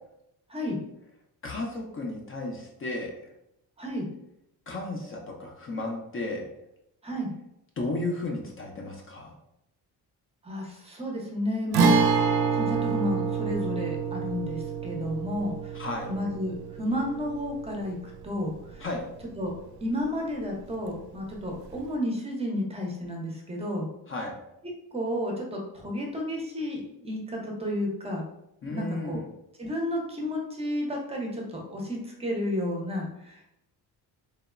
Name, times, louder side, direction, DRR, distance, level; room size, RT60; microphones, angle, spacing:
voice 1, 1.4-3.1 4.7-6.4 7.8-9.3 15.7-16.1 18.8-19.1 24.1-24.4 28.6-29.3, left 2 dB, 35° left, 0 dB, 0.5 m, -33 dB
voice 2, 10.4-11.9 12.5-15.8 16.0-18.0 18.2-18.8 19.4-19.5 19.8-23.9 24.9-28.2 28.6-29.2 29.6-33.5, left 1 dB, 15° right, -1 dB, 0.6 m, -32 dB
Guitar, 11.7-19.4 19.6-19.7 21.7-21.9, right 5 dB, 70° right, 0.5 m, -27 dB
3.0 x 2.0 x 2.3 m, 0.81 s
cardioid pair, 105°, 40 cm